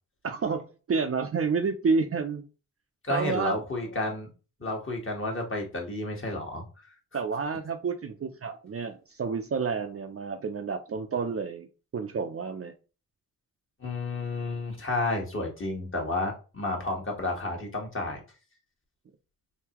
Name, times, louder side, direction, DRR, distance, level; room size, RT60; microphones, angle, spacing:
voice 1, 0.2-2.4 3.1-3.6 7.1-11.7 11.9-12.7, right 5 dB, 40° right, 0.5 m, -29 dB
voice 2, 3.0-4.3 4.6-6.6 13.8-18.2, left 2 dB, 35° left, 1.4 m, -31 dB
3.8 x 2.8 x 2.9 m
cardioid pair, 75°, 36 cm